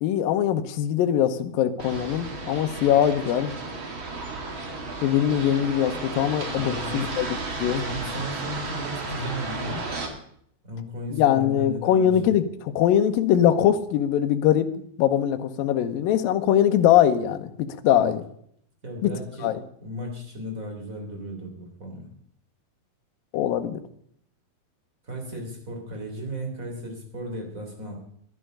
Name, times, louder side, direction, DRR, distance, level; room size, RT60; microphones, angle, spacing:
voice 1, 0.0-3.5 5.0-7.8 11.1-12.5 12.8-14.7 15.0-18.2 19.0-19.1 19.4-19.6 23.3-23.8, left 10 dB, 75° left, 7 dB, 2.6 m, -22 dB
sound 1, 1.8-10.1, right 3 dB, 40° right, 2.2 m, -33 dB
voice 2, 6.5-7.1 7.6-9.8 10.6-12.3 18.0-18.1 18.8-19.5 19.8-22.1 25.0-27.9, equal, 20° right, 2 dB, 3.4 m, -35 dB
12.5 x 11.0 x 6.8 m, 0.67 s
omnidirectional pair, 4.4 m